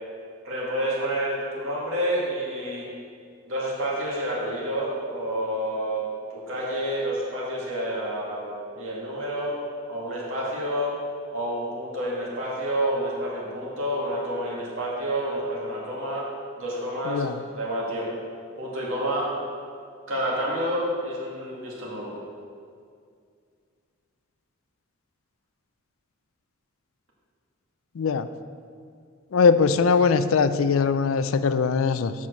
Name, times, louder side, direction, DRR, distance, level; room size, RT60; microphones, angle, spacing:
voice 1, 0.4-2.9 3.5-6.0 6.3-9.6 9.9-10.9 11.3-16.3 16.6-18.1 18.6-19.3 20.1-22.1, equal, 70° right, -5 dB, 2.2 m, -29 dB
voice 2, 17.1-17.4 28.0-28.3 29.3-32.1, left 5 dB, 75° left, 12 dB, 0.4 m, -21 dB
7.5 x 5.6 x 6.3 m, 2.2 s
head